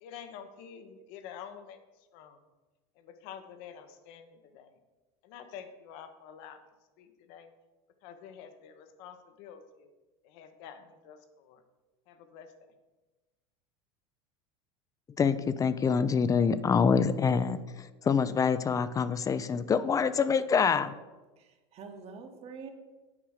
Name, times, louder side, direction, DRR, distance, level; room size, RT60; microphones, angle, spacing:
voice 1, 0.0-1.8 2.1-2.4 3.0-4.7 5.2-6.6 7.0-7.5 8.0-9.9 10.2-11.6 12.1-12.5, left 8 dB, 65° left, 9 dB, 1.1 m, -48 dB
voice 2, 15.2-17.6 18.0-20.9, left 6 dB, 25° left, 14 dB, 0.5 m, -25 dB
voice 3, 21.4-22.7, right 5 dB, 45° right, 5 dB, 1.4 m, -46 dB
8.9 x 4.8 x 6.5 m, 1.2 s
supercardioid pair, 105°, 15 cm